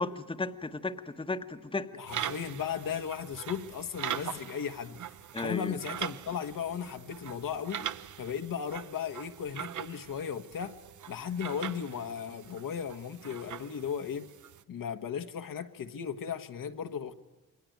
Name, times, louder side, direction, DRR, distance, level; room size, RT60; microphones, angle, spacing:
voice 1, 0.0-1.9 5.3-5.8, left 3 dB, 15° left, 1.3 m, -34 dB
voice 2, 1.9-5.0 5.4-7.9 8.2-10.8 11.1-14.3 14.7-17.1, left 7 dB, 65° left, 1.6 m, -36 dB
sound 1, 2.1-14.6, right 10 dB, 55° right, 0.9 m, -42 dB
28.5 x 22.0 x 9.4 m
cardioid pair, 90°, 36 cm